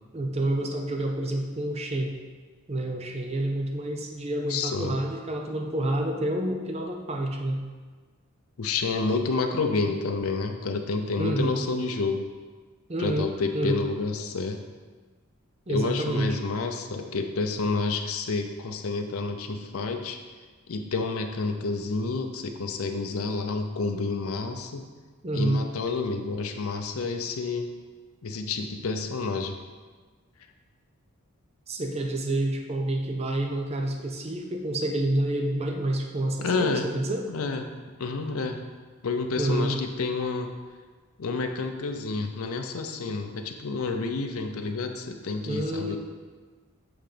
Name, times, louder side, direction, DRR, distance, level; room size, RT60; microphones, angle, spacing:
voice 1, 0.1-2.2 2.7-7.6 11.2-11.5 12.9-13.8 15.7-16.3 25.2-25.6 31.7-37.3 39.4-39.7 45.5-46.0, right 1 dB, 30° right, 2 dB, 0.6 m, -28 dB
voice 2, 4.5-5.0 8.6-12.2 13.0-14.6 15.7-20.2 20.7-24.8 25.3-27.7 28.2-29.6 36.4-36.9 37.3-37.7 38.0-38.6 39.0-40.5 41.2-46.0, left 3 dB, 75° left, 4 dB, 0.6 m, -29 dB
7.9 x 3.9 x 5.0 m, 1.4 s
head